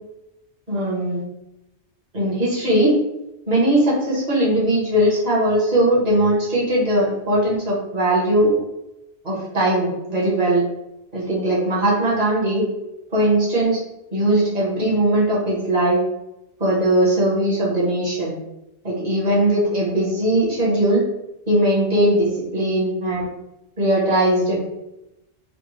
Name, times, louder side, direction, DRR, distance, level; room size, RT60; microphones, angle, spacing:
voice 1, 0.7-1.2 2.1-3.0 3.5-8.5 9.2-10.6 11.1-12.7 13.1-13.8 14.1-16.0 16.6-18.3 18.8-21.0 21.5-23.2 23.8-24.6, right 1 dB, 40° right, -7 dB, 1.3 m, -19 dB
3.4 x 2.4 x 3.0 m, 0.91 s
omnidirectional pair, 1.1 m